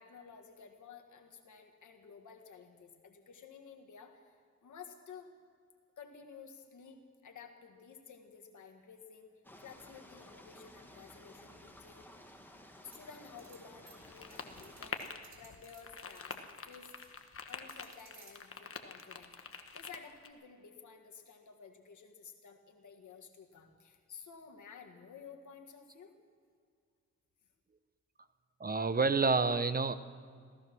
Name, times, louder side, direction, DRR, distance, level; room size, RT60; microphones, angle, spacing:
voice 1, 0.0-5.3 6.0-9.3 9.6-12.1 12.8-16.9 17.5-26.1, left 6 dB, 85° left, 3 dB, 1.8 m, -53 dB
sound 1, 9.4-14.9, left 1 dB, 5° left, 1.6 m, -55 dB
sound 2, 12.9-17.2 17.5-18.3, right 4 dB, 65° right, 3.6 m, -60 dB
sound 3, 14.0-20.3, left 5 dB, 50° left, 1.3 m, -46 dB
voice 2, 28.6-29.9, right 4 dB, 30° right, 12 dB, 0.7 m, -28 dB
16.5 x 14.0 x 6.1 m, 2.1 s
cardioid pair, 80°, 29 cm